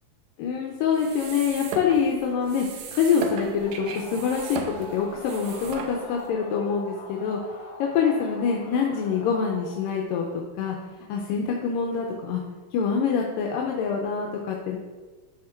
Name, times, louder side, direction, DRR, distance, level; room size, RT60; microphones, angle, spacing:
voice 1, 0.4-2.7 2.9-7.4 7.8-10.8 11.1-12.4 12.7-14.8, left 6 dB, 80° left, 0 dB, 2.4 m, -25 dB
sound 1, 0.9-6.3, right 5 dB, 75° right, 1.7 m, -37 dB
sound 2, 3.6-9.8, left 2 dB, 55° left, 2.3 m, -43 dB
12.5 x 4.4 x 4.4 m, 1.4 s
omnidirectional pair, 3.9 m